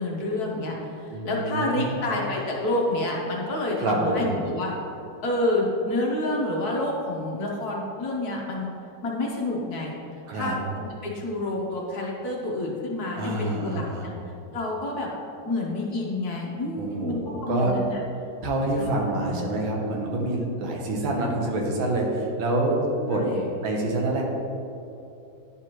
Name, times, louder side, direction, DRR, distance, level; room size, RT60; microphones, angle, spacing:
voice 1, 0.0-4.7 5.2-8.7 9.0-9.9 10.3-14.1 14.5-15.1 15.5-17.9 18.8-19.1 23.0-23.5, left 2 dB, 60° left, -2 dB, 1.4 m, -28 dB
voice 2, 1.1-2.1 3.8-4.3 10.3-10.5 13.2-14.1 16.7-17.7 18.4-23.2 23.6-24.2, right 2 dB, 85° right, -1 dB, 1.8 m, -27 dB
10.0 x 4.7 x 3.0 m, 2.8 s
omnidirectional pair, 2.1 m